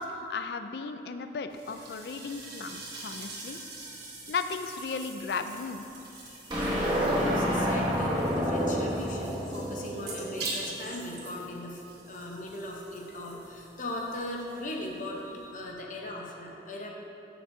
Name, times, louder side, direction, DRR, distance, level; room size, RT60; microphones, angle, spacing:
voice 1, 0.0-3.6 4.3-5.8, left 4 dB, 60° left, 8 dB, 0.4 m, -35 dB
sound 1, 1.5-15.7, right 3 dB, 65° right, 1.7 m, -44 dB
voice 2, 6.3-16.9, left 1 dB, 45° left, -1 dB, 0.9 m, -38 dB
sound 2, 6.5-10.9, equal, 25° right, 1.2 m, -29 dB
12.5 x 6.0 x 2.7 m, 2.9 s
head